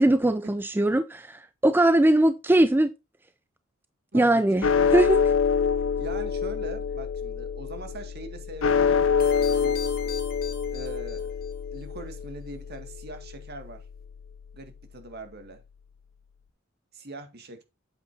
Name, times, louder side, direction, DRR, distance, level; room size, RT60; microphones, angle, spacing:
voice 1, 0.0-2.9 4.1-5.2, right 1 dB, 10° right, 0.4 m, -21 dB
voice 2, 4.1-4.6 6.0-9.8 10.7-11.3 11.7-13.8 14.5-15.6 16.9-17.6, right 2 dB, 55° right, 1.9 m, -42 dB
sound 1, 4.6-15.0, left 6 dB, 75° left, 0.6 m, -27 dB
sound 2, 9.2-11.5, left 7 dB, 50° left, 1.8 m, -41 dB
8.4 x 7.9 x 2.7 m
head